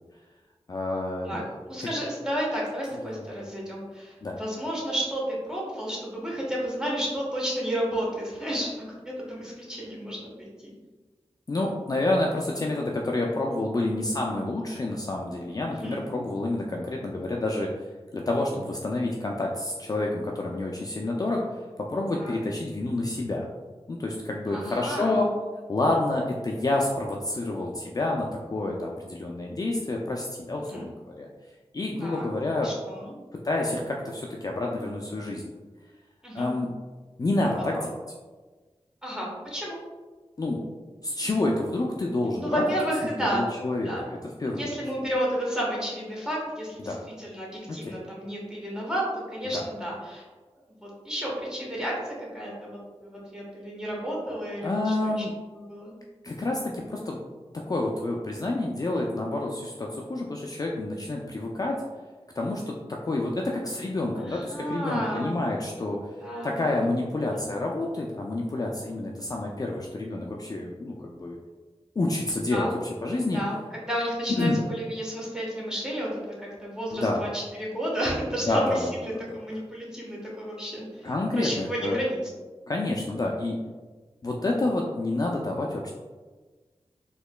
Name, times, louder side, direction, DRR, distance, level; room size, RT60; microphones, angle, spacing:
voice 1, 0.7-1.5 4.2-4.4 11.5-17.7 18.1-23.5 23.9-25.3 25.7-31.3 31.7-32.7 33.4-35.5 36.3-36.7 37.2-37.9 40.4-40.6 41.0-42.6 43.2-44.8 46.8-47.0 47.7-47.9 49.5-49.6 54.6-55.3 56.2-57.2 57.7-61.8 62.3-66.0 66.4-71.4 72.0-73.4 74.3-74.6 76.9-77.2 78.5-78.8 79.1-79.4 81.0-82.0 82.7-83.6 84.2-85.9, left 2 dB, 35° left, -1 dB, 0.3 m, -28 dB
voice 2, 1.7-8.7 9.0-10.7 15.8-16.0 22.2-22.4 24.5-25.2 30.6-30.9 32.0-32.3 32.6-33.1 36.2-36.5 37.7-37.8 39.0-39.8 42.4-43.4 43.8-44.0 44.6-50.3 50.8-55.2 55.5-55.9 64.1-65.4 66.2-66.9 67.3-67.4 72.5-72.7 73.3-73.6 73.9-82.2, equal, 5° right, -5 dB, 1.2 m, -32 dB
4.2 x 2.9 x 2.2 m, 1.3 s
wide cardioid pair, 75°, 11 cm